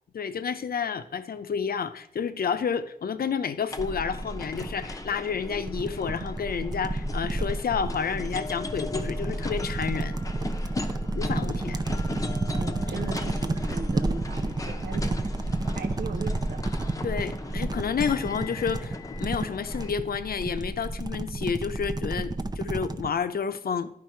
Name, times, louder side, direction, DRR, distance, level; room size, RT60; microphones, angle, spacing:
voice 1, 0.1-10.2 11.1-11.8 17.0-23.9, left 6 dB, 75° left, 11 dB, 0.7 m, -30 dB
sound 1, 3.7-19.9, left 2 dB, 20° left, 0.7 m, -39 dB
sound 2, 3.8-23.1, right 2 dB, 25° right, 0.5 m, -31 dB
voice 2, 11.5-12.2 12.6-15.1 15.7-16.7, right 5 dB, 80° right, 5 dB, 0.7 m, -38 dB
11.0 x 5.2 x 4.5 m, 0.73 s
wide cardioid pair, 110°, 16 cm